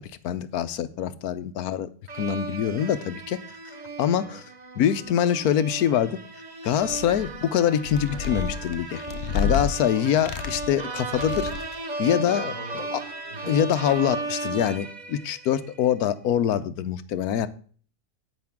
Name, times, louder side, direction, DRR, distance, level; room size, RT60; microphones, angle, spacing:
voice 1, 0.0-1.9 2.2-3.4 4.0-4.5 4.8-6.2 6.6-9.0 9.3-11.5 12.0-12.5 12.9-13.0 13.5-17.5, left 9 dB, 80° left, 14 dB, 1.2 m, -24 dB
sound 1, 2.1-15.8, right 3 dB, 30° right, 1.0 m, -35 dB
sound 2, 6.7-7.4 7.8-9.7 10.1-10.8 11.1-11.8, left 6 dB, 55° left, 0.9 m, -30 dB
voice 2, 9.9-10.3 12.2-13.6, equal, 90° right, -11 dB, 6.8 m, -42 dB
10.5 x 8.9 x 3.6 m, 0.43 s
omnidirectional pair, 1.6 m